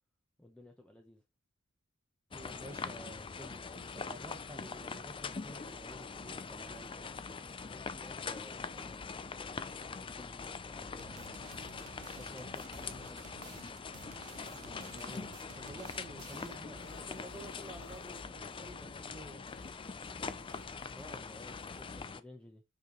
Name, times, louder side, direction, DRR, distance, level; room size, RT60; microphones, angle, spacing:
voice 1, 0.4-1.2 7.7-11.3 12.0-15.2 16.3-16.4 20.9-22.6, left 1 dB, 5° left, 0.8 m, -55 dB
sound 1, 2.3-22.2, left 5 dB, 25° left, 0.4 m, -43 dB
voice 2, 2.3-7.1 12.1-12.3 14.6-19.4, right 1 dB, 10° right, 1.6 m, -51 dB
sound 2, 11.0-16.7, right 8 dB, 85° right, 0.5 m, -54 dB
sound 3, 16.7-22.1, left 3 dB, 70° left, 2.1 m, -57 dB
6.7 x 5.0 x 3.0 m
head